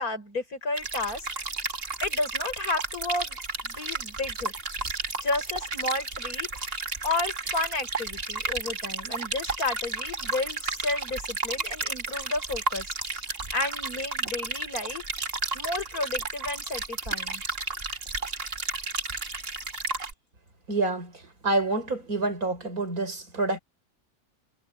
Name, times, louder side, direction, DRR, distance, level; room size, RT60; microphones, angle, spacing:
voice 1, 0.0-1.5 2.0-3.4 3.6-4.5 5.2-6.5 7.0-15.1 15.5-17.4, left 2 dB, 80° left, 6.6 m, -32 dB
sound 1, 0.8-20.1, right 3 dB, 40° right, 2.2 m, -32 dB
voice 2, 20.7-21.1 21.4-23.6, right 2 dB, 80° right, 5.1 m, -27 dB
omnidirectional pair, 1.5 m